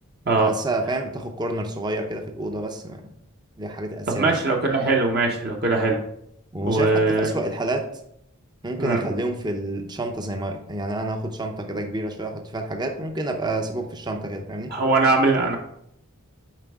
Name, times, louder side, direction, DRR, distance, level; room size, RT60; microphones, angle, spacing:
voice 1, 0.4-3.0 3.6-4.4 6.5-7.9 8.6-14.7, right 1 dB, 20° right, 4 dB, 0.6 m, -29 dB
voice 2, 4.2-6.0 6.6-7.3 8.8-9.0 14.7-15.6, right 3 dB, 45° right, 0 dB, 0.9 m, -21 dB
7.4 x 5.1 x 3.5 m, 0.74 s
head